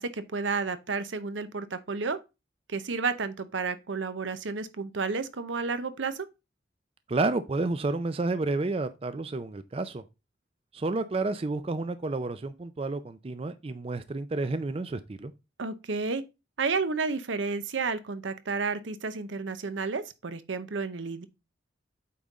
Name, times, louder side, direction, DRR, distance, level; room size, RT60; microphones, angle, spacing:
voice 1, 0.0-2.2 2.7-6.3 15.6-16.2 16.6-21.3, right 4 dB, 80° right, 0.7 m, -31 dB
voice 2, 7.1-10.0 10.7-15.3, right 3 dB, 30° right, 0.4 m, -30 dB
8.5 x 3.7 x 4.1 m
head